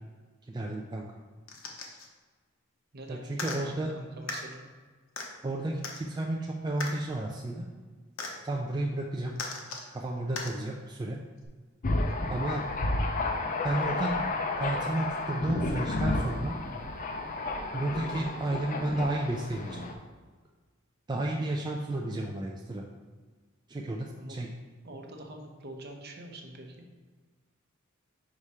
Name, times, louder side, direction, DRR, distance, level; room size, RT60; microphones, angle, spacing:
voice 1, 0.5-1.1 3.1-3.9 5.4-7.7 8.4-9.4 9.9-11.2 12.3-12.6 13.6-14.1 14.6-16.6 17.7-19.8 21.1-22.8 23.7-24.5, right 2 dB, 20° right, 0 dB, 0.4 m, -32 dB
sound 1, 1.5-2.1 3.3-3.6 4.3-4.4 5.2-5.3 5.8-6.0 6.8-6.9 8.2-8.3 9.4-9.9 10.4-10.5 11.4-11.5, left 4 dB, 65° left, 0.9 m, -37 dB
voice 2, 2.9-4.7 12.0-12.4 24.2-24.4 24.8-26.9, right 1 dB, 50° right, 2 dB, 0.8 m, -45 dB
Thunder, 11.8-19.9, left 2 dB, 40° left, 0.5 m, -32 dB
5.0 x 4.8 x 4.2 m, 1.4 s
head